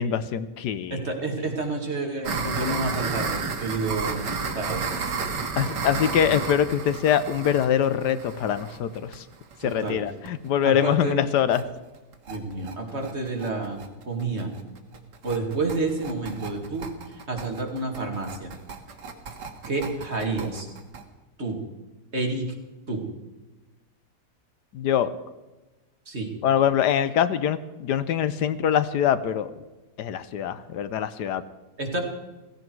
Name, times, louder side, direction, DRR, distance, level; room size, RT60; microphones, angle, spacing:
voice 1, 0.0-1.1 5.6-9.2 9.6-11.6 24.7-25.1 26.4-29.5 30.0-31.4, left 9 dB, 75° left, 14 dB, 1.3 m, -24 dB
voice 2, 0.9-4.3 4.5-4.8 9.6-10.0 10.6-11.1 12.3-13.8 14.1-14.5 15.2-16.9 17.3-18.5 19.7-20.7 21.4-21.6 22.1-22.5 22.9-23.0 26.1-26.3 31.8-32.0, right 3 dB, 40° right, 2 dB, 2.5 m, -29 dB
sound 1, 2.2-9.9 10.3-10.4 10.6-10.7 11.0-11.1 11.4-11.6 11.9-21.0, right 5 dB, 85° right, 2.1 m, -32 dB
16.0 x 16.0 x 4.6 m, 1.1 s
omnidirectional pair, 1.8 m